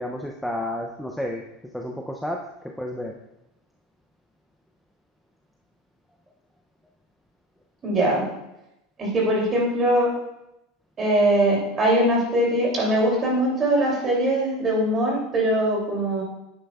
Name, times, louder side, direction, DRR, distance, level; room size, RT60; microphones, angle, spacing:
voice 1, 0.0-1.4 1.7-2.4 2.8-3.2, left 1 dB, ahead, 0 dB, 0.5 m, -30 dB
voice 2, 7.8-8.2 9.0-10.1 11.0-16.2, right 1 dB, 20° right, -3 dB, 2.8 m, -21 dB
10.0 x 8.9 x 2.4 m, 0.91 s
supercardioid pair, 160°, 0 cm